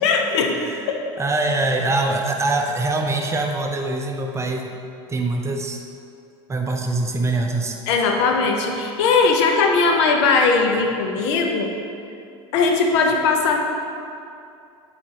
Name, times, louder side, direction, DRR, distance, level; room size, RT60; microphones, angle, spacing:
voice 1, 0.0-0.6 0.9-1.2 7.9-11.7 12.5-13.6, left 4 dB, 75° left, 3 dB, 0.7 m, -19 dB
voice 2, 1.2-4.8 5.1-5.8 6.5-7.8, right 2 dB, 20° right, 2 dB, 0.6 m, -23 dB
8.3 x 4.4 x 2.9 m, 2.5 s
supercardioid pair, 95°, 14 cm